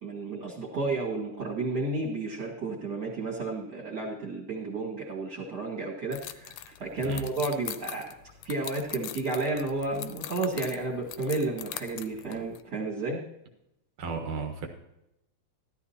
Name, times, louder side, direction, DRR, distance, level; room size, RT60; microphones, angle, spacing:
voice 1, 0.0-8.1 8.4-13.2, right 3 dB, 35° right, -4 dB, 2.4 m, -32 dB
sound 1, 6.1-12.6, left 12 dB, 75° left, 1.8 m, -42 dB
voice 2, 14.0-14.7, right 5 dB, 60° right, 4 dB, 2.2 m, -34 dB
14.5 x 12.5 x 2.9 m, 0.84 s
omnidirectional pair, 3.7 m